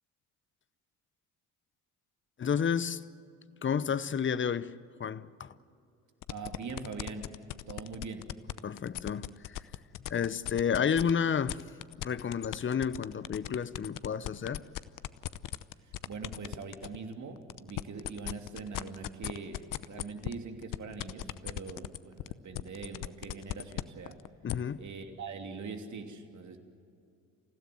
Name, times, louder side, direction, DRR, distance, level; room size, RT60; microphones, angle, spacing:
voice 1, 2.4-3.0 3.6-5.6 8.6-9.6 10.1-11.6 12.0-14.6 24.4-24.8, left 7 dB, 30° left, 0.9 m, -31 dB
sound 1, 6.2-11.1 11.5-17.0 17.4-24.5, left 14 dB, 55° left, 0.8 m, -37 dB
voice 2, 6.3-7.3 7.7-8.3 15.8-24.2 24.8-26.6, right 4 dB, 45° right, 2.9 m, -42 dB
28.5 x 16.5 x 7.9 m
hypercardioid pair, 50°, 39 cm